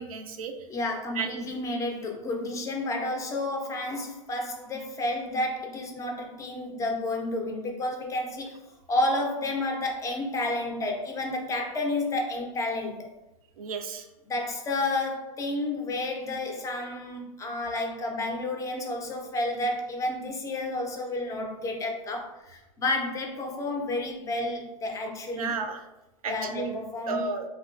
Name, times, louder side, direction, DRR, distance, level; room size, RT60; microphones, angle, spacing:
voice 1, 0.0-0.5 1.1-1.4 13.6-14.1 25.3-25.9 26.2-26.8 27.1-27.5, right 5 dB, 80° right, 6 dB, 0.4 m, -33 dB
voice 2, 0.7-8.6 8.9-13.0 14.3-25.6 26.3-27.3, left 2 dB, 20° left, 1 dB, 0.4 m, -31 dB
2.9 x 2.2 x 2.3 m, 0.94 s
hypercardioid pair, 110°, 18 cm